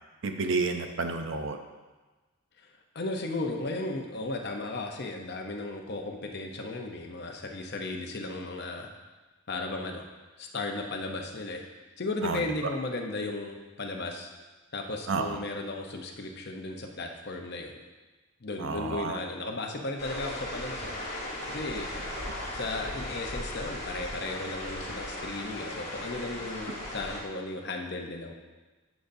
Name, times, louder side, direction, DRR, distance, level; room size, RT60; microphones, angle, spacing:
voice 1, 0.2-1.6 12.2-12.4 15.1-15.3 18.6-19.2, right 4 dB, 60° right, 6 dB, 0.6 m, -30 dB
voice 2, 2.6-8.9 9.5-10.1 10.4-11.6 12.0-14.3 14.7-17.8 18.4-20.9 21.5-21.9 22.5-28.3, left 2 dB, 50° left, 2 dB, 0.7 m, -35 dB
sound 1, 20.0-27.2, left 1 dB, 30° left, 1.4 m, -37 dB
11.0 x 5.2 x 2.7 m, 1.2 s
head